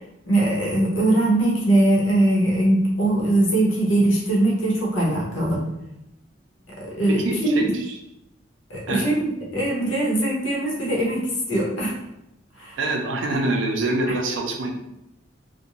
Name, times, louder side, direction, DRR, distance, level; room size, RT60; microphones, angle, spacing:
voice 1, 0.3-5.6 6.8-7.7 8.7-12.0 12.6-12.8, right 1 dB, 90° left, -3 dB, 0.9 m, -21 dB
voice 2, 7.1-7.7 8.9-9.1 12.8-14.7, right 2 dB, 75° right, 2 dB, 0.5 m, -25 dB
2.5 x 2.1 x 2.9 m, 0.84 s
head